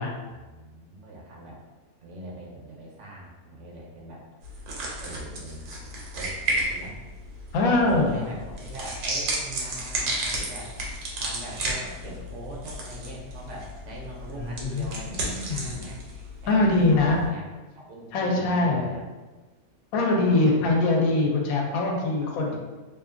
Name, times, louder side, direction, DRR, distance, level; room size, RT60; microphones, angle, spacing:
voice 1, 0.2-1.6 2.0-4.2 5.0-7.0 7.7-10.7 11.2-16.0 16.4-17.4 17.7-19.0 20.3-20.7 22.2-22.6, right 1 dB, 65° right, -3 dB, 0.8 m, -42 dB
sound 1, 4.4-17.3, right 1 dB, 90° right, 1.1 m, -33 dB
voice 2, 7.5-8.2 14.4-15.8 16.5-17.2 18.1-18.9 19.9-22.6, left 2 dB, 75° left, -1 dB, 1.0 m, -23 dB
2.7 x 2.3 x 2.4 m, 1.2 s
omnidirectional pair, 1.5 m